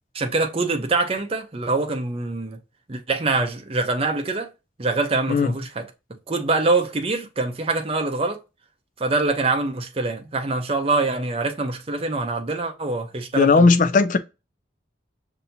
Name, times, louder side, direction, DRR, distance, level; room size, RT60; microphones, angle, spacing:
voice 1, 0.1-2.6 2.9-4.5 4.8-5.9 6.3-8.4 9.0-13.7, right 3 dB, 30° right, 0.6 m, -24 dB
voice 2, 13.3-14.2, left 4 dB, 45° left, 0.4 m, -16 dB
5.6 x 2.7 x 2.6 m
head